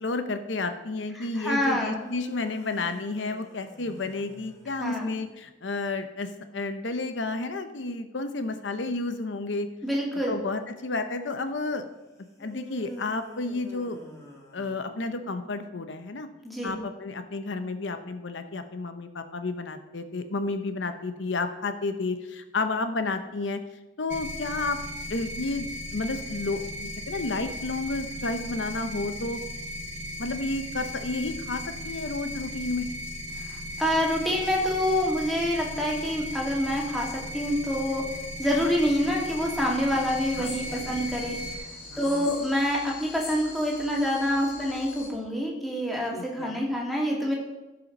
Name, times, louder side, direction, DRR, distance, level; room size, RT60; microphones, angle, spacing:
voice 1, 0.0-9.7 10.3-11.8 12.4-14.0 14.5-16.3 16.6-23.6 24.0-24.8 25.1-25.7 25.9-29.4 30.2-32.9 40.4-41.3 41.9-42.3 46.1-46.6, left 3 dB, 75° left, 9 dB, 0.8 m, -31 dB
voice 2, 1.2-2.1 4.8-5.1 9.8-10.3 16.4-16.8 33.5-38.0 38.4-41.4 42.0-47.3, equal, ahead, -3 dB, 2.3 m, -27 dB
sound 1, 2.0-5.2 12.4-15.3, left 1 dB, 20° left, 2.1 m, -47 dB
sound 2, 24.1-41.5, left 1 dB, 60° right, 1.6 m, -37 dB
sound 3, 40.1-45.1, left 2 dB, 50° left, 3.4 m, -42 dB
15.5 x 5.7 x 5.3 m, 1.0 s
head